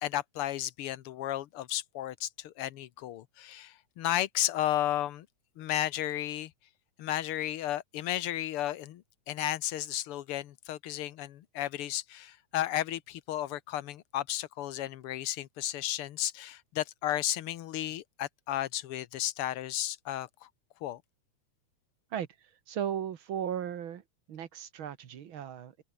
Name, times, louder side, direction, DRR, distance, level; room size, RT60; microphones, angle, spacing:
voice 1, 0.0-5.3 5.6-6.5 7.0-20.5 20.8-21.0, left 13 dB, 70° left, 1.4 m, -33 dB
voice 2, 22.7-24.0 24.3-25.8, right 9 dB, 50° right, 1.8 m, -36 dB
omnidirectional pair, 3.4 m